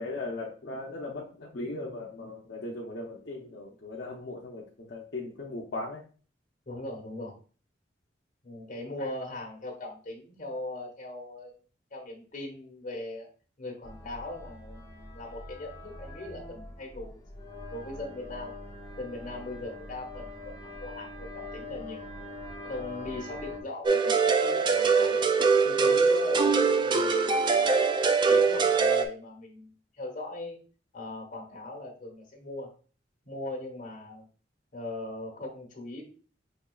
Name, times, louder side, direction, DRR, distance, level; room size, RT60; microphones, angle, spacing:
voice 1, 0.0-6.0, left 2 dB, 65° left, -3 dB, 0.6 m, -38 dB
voice 2, 6.6-7.3 8.4-11.5 11.9-13.3 13.6-17.2 17.7-18.6 19.0-22.0 22.6-25.2 25.6-27.7 28.0-30.6 30.9-32.7 33.2-34.3 34.7-36.0, left 2 dB, 45° left, -1 dB, 1.3 m, -39 dB
sound 1, 13.8-23.6, left 2 dB, 20° left, 0.7 m, -43 dB
sound 2, 23.9-29.1, right 5 dB, 25° right, 0.3 m, -23 dB
5.4 x 3.0 x 2.3 m, 0.40 s
head